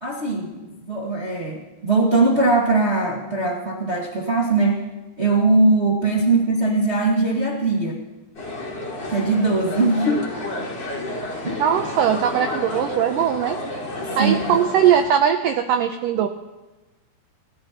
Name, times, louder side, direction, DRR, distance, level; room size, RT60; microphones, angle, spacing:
voice 1, 0.0-4.8 5.2-8.0 9.1-10.2 11.4-11.6 14.2-14.6, right 3 dB, 50° right, -3 dB, 0.7 m, -20 dB
sound 1, 8.3-15.0, left 2 dB, 30° left, 2.8 m, -31 dB
voice 2, 11.6-13.6 14.2-16.3, right 9 dB, 80° right, 6 dB, 1.9 m, -20 dB
28.0 x 14.5 x 3.0 m, 1.1 s
omnidirectional pair, 4.6 m